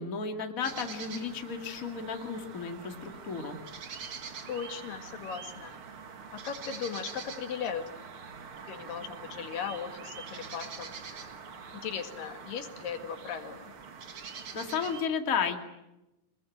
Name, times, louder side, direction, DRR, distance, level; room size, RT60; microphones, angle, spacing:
voice 1, 0.0-3.6 14.5-15.6, left 6 dB, 30° left, 4 dB, 2.3 m, -33 dB
sound 1, 0.6-15.0, right 6 dB, 45° right, 2.4 m, -44 dB
voice 2, 4.5-5.8 6.3-7.8 8.7-10.9 11.7-13.7, left 7 dB, 85° left, 6 dB, 3.7 m, -37 dB
26.0 x 21.5 x 9.2 m, 0.96 s
omnidirectional pair, 3.8 m